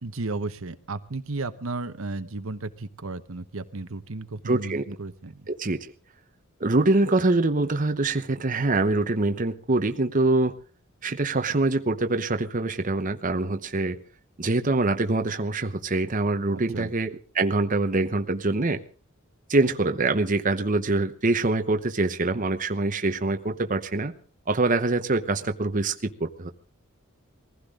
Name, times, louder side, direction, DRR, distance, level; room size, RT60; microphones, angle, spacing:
voice 1, 0.0-5.5 16.7-16.9, right 3 dB, 70° right, 10 dB, 1.1 m, -34 dB
voice 2, 4.5-4.8 5.5-5.8 6.6-10.6 11.0-14.0 14.4-17.1 17.3-18.8 19.5-24.1 24.5-26.5, right 2 dB, 40° right, 7 dB, 0.9 m, -24 dB
22.0 x 15.5 x 3.7 m, 0.38 s
head